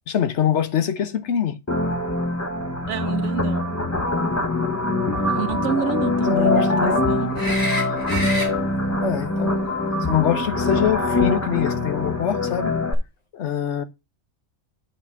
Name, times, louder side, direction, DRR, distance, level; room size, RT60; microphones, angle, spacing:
voice 1, 0.1-1.6 6.3-7.0 9.0-9.7 10.1-12.8 13.3-13.8, left 9 dB, 60° left, 1.1 m, -24 dB
sound 1, 1.7-12.9, left 2 dB, 15° left, 0.9 m, -23 dB
voice 2, 2.9-3.7 5.3-7.4, right 9 dB, 65° right, 1.0 m, -28 dB
sound 2, 7.4-8.5 11.4-11.5, equal, 35° left, 3.3 m, -28 dB
7.8 x 4.2 x 5.9 m
omnidirectional pair, 1.5 m